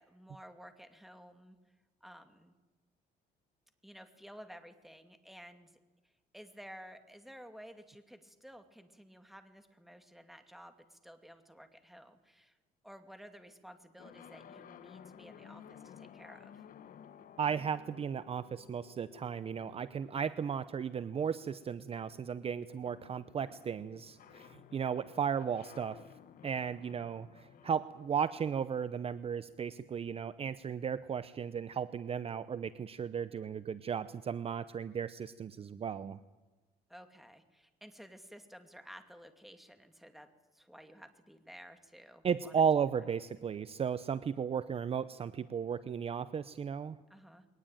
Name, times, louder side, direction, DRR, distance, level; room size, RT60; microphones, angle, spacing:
voice 1, 0.0-1.6 2.0-2.5 3.8-5.8 6.0-12.6 12.8-16.6 36.9-40.3 40.5-42.6 47.1-47.5, equal, ahead, 7 dB, 2.5 m, -54 dB
sound 1, 14.0-29.8, left 8 dB, 55° left, 1.3 m, -56 dB
voice 2, 17.4-26.0 26.4-36.2 42.2-47.0, right 7 dB, 35° right, 14 dB, 0.7 m, -35 dB
22.0 x 19.0 x 9.1 m, 1.2 s
cardioid pair, 110°, 17 cm